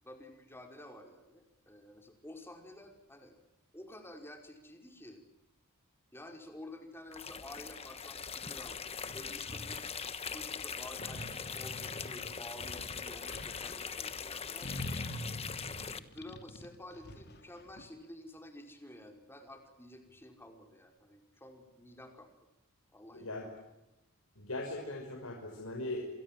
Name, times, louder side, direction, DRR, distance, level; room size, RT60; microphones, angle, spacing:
voice 1, 0.0-3.3 3.7-5.2 6.1-9.9 10.3-14.8 15.7-22.3 22.9-23.5, left 1 dB, 10° left, 4 dB, 5.1 m, -51 dB
sound 1, 7.1-16.0, left 6 dB, 30° left, 1.3 m, -41 dB
sound 2, 9.1-9.8 11.0-13.7 14.6-17.8, left 1 dB, 50° left, 2.8 m, -44 dB
voice 2, 23.1-23.5 24.4-26.1, left 2 dB, 85° left, 1 dB, 5.8 m, -39 dB
28.0 x 27.5 x 7.6 m, 0.95 s
head